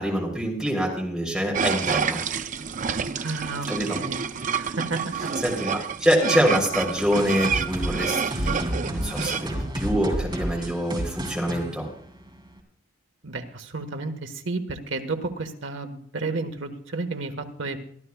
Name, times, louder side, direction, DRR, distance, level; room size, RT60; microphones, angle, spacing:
voice 1, 0.0-2.2 3.7-4.0 5.4-11.9, equal, 5° right, -1 dB, 3.4 m, -25 dB
sound 1, 1.5-9.5, right 6 dB, 35° right, 0.5 m, -29 dB
voice 2, 3.2-4.2 4.4-5.3 13.2-17.8, right 3 dB, 65° right, 6 dB, 1.4 m, -32 dB
sound 2, 7.1-12.6, equal, 20° right, 2.7 m, -31 dB
23.5 x 13.5 x 2.3 m, 0.63 s
head